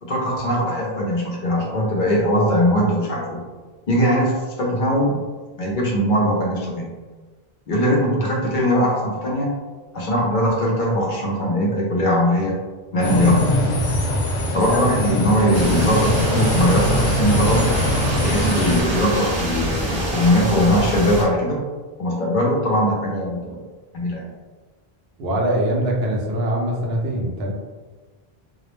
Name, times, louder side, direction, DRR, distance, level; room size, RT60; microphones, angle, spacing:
voice 1, 0.0-3.4 3.9-4.3 4.6-5.2 5.6-6.9 7.7-9.5 9.9-12.6 12.9-13.5 14.5-17.7 18.2-21.6 22.0-23.6 23.9-24.2, equal, 55° left, -3 dB, 0.7 m, -20 dB
sound 1, 13.0-18.8, left 1 dB, 85° left, 0.9 m, -22 dB
sound 2, 14.9-19.9, right 6 dB, 10° left, 0.7 m, -35 dB
sound 3, 15.5-21.2, equal, 35° right, 0.5 m, -25 dB
voice 2, 25.2-27.5, right 1 dB, 80° right, -1 dB, 0.8 m, -22 dB
2.3 x 2.0 x 3.0 m, 1.3 s
omnidirectional pair, 1.0 m